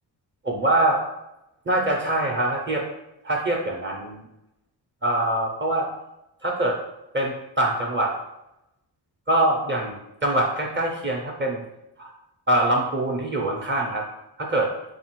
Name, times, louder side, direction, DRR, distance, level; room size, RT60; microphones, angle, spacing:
voice 1, 0.4-1.0 1.7-2.9 3.2-4.2 5.0-5.9 6.4-6.8 7.1-8.1 9.3-11.6 12.0-12.1 12.5-14.0 14.4-14.7, right 1 dB, 25° right, 0 dB, 0.5 m, -24 dB
3.7 x 2.5 x 4.4 m, 0.88 s
wide cardioid pair, 145°, 42 cm